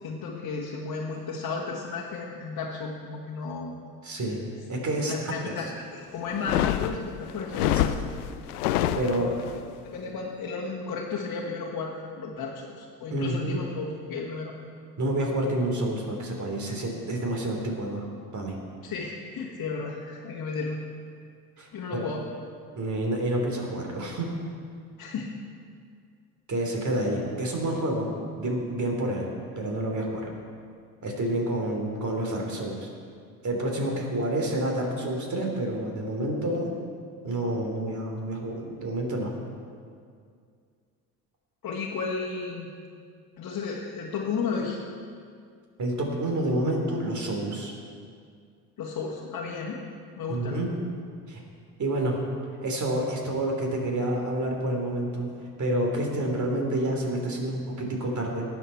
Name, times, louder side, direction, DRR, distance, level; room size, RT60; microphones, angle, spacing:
voice 1, 0.0-3.7 5.0-7.9 8.8-9.4 9.8-14.5 18.8-20.8 21.7-22.2 25.0-25.3 41.6-42.7 43.4-44.8 48.8-49.8 50.2-50.6, left 4 dB, 45° left, -3 dB, 1.7 m, -33 dB
voice 2, 4.0-4.4 4.7-5.3 7.7-7.9 9.0-9.3 13.1-13.7 15.0-18.0 18.3-18.6 21.6-22.0 22.7-24.3 26.5-28.1 28.4-29.3 29.5-30.3 31.0-32.9 33.4-36.8 37.2-39.3 45.8-47.7 50.3-50.7 51.3-51.4 51.8-52.2 52.6-55.3 55.6-58.4, right 1 dB, 40° right, 1 dB, 3.2 m, -28 dB
sound 1, 6.3-9.6, left 12 dB, 85° left, 0.5 m, -27 dB
18.0 x 7.1 x 4.6 m, 2.2 s
hypercardioid pair, 60°, 45 cm